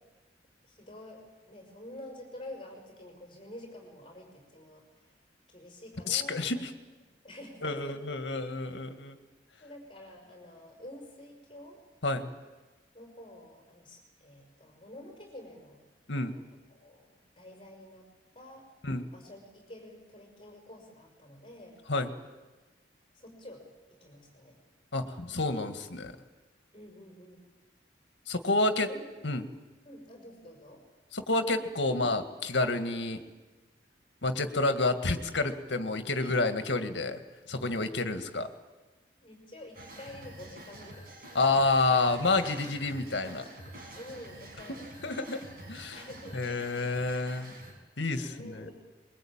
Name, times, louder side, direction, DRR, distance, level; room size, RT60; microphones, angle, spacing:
voice 1, 0.6-5.1 5.5-6.6 7.2-8.0 9.6-11.8 12.9-15.8 16.3-16.4 16.7-18.1 18.3-18.7 19.1-21.8 23.1-23.7 24.0-24.6 26.7-27.5 28.6-29.0 29.9-30.8 34.4-34.5 36.2-36.4 37.8-38.1 39.2-41.2 44.0-44.9 45.9-46.6 48.2-48.7, left 1 dB, 30° left, 3 dB, 5.7 m, -48 dB
voice 2, 6.1-6.7 7.6-9.2 12.0-12.3 16.1-16.4 18.8-19.1 21.9-22.1 24.9-26.1 28.3-28.9 29.2-29.4 31.1-33.2 34.2-37.2 37.5-38.5 41.3-43.4 44.7-44.8 45.0-45.4 45.7-46.0 46.3-47.5 48.0-48.7, left 2 dB, 75° left, 8 dB, 1.9 m, -29 dB
sound 1, 39.7-47.7, right 1 dB, 55° right, 6.7 m, -48 dB
23.5 x 22.5 x 8.9 m, 1.2 s
head